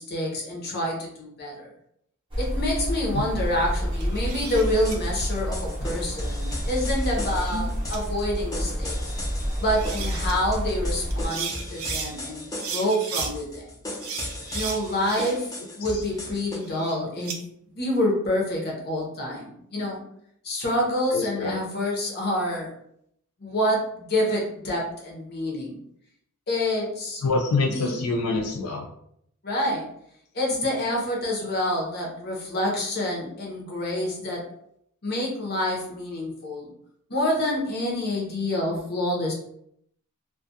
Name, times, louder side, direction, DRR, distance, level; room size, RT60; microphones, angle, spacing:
voice 1, 0.0-1.7 2.4-9.0 9.6-13.7 14.5-17.4 17.7-20.0 20.4-22.7 23.4-25.8 26.5-27.3 27.7-28.0 29.4-29.9 30.3-34.5 35.0-36.7 37.1-39.3, left 1 dB, 45° left, -2 dB, 0.7 m, -27 dB
sound 1, 2.3-11.3, equal, 25° right, 0.7 m, -29 dB
sound 2, 3.9-5.0 6.5-7.6 7.9-8.0 9.4-9.5 9.7-10.3 11.1-12.1 12.6-13.3 14.0-15.5 15.9-17.4, right 6 dB, 70° right, 0.5 m, -35 dB
sound 3, 4.6-16.6, left 1 dB, 15° left, 0.5 m, -37 dB
voice 2, 21.1-21.5 27.2-28.9, left 3 dB, 85° left, 1 dB, 0.4 m, -25 dB
2.3 x 2.2 x 2.6 m, 0.71 s
head